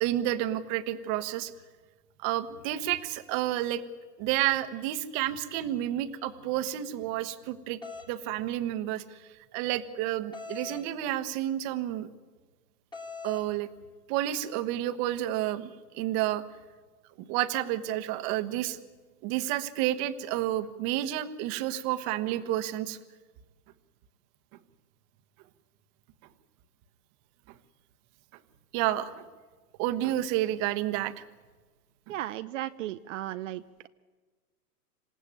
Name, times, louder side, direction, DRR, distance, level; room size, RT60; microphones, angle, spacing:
voice 1, 0.0-1.5 2.2-3.8 4.2-7.8 8.1-9.0 9.5-12.1 13.2-13.7 14.1-16.4 17.2-18.8 19.2-23.0 28.7-29.2 29.8-31.2, right 13 dB, 35° right, 11 dB, 1.3 m, -30 dB
sound 1, 7.8-8.1 10.3-10.9 12.9-13.5, left 5 dB, 10° left, 2.0 m, -41 dB
voice 2, 32.1-33.9, right 14 dB, 50° right, 12 dB, 0.7 m, -36 dB
27.5 x 15.5 x 9.4 m, 1.4 s
hypercardioid pair, 130°, 49 cm